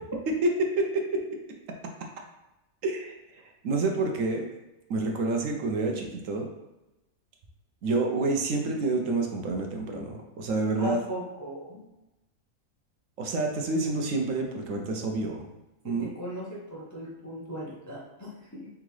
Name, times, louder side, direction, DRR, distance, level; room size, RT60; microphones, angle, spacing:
voice 1, 0.3-1.4 2.8-3.1 3.6-4.5 4.9-6.5 7.8-11.0 13.2-15.5 15.8-16.1, right 2 dB, 70° right, 2 dB, 1.0 m, -28 dB
voice 2, 10.8-11.8 15.8-18.7, equal, 20° left, -5 dB, 0.6 m, -38 dB
3.7 x 3.6 x 3.2 m, 0.97 s
omnidirectional pair, 1.4 m